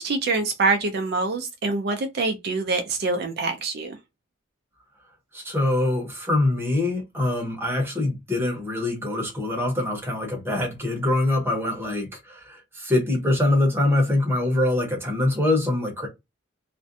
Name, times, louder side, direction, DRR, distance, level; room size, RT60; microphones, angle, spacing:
voice 1, 0.0-4.0, right 3 dB, 50° right, 0.4 m, -25 dB
voice 2, 5.3-16.1, left 2 dB, 10° right, 0.8 m, -24 dB
2.4 x 2.1 x 2.5 m
head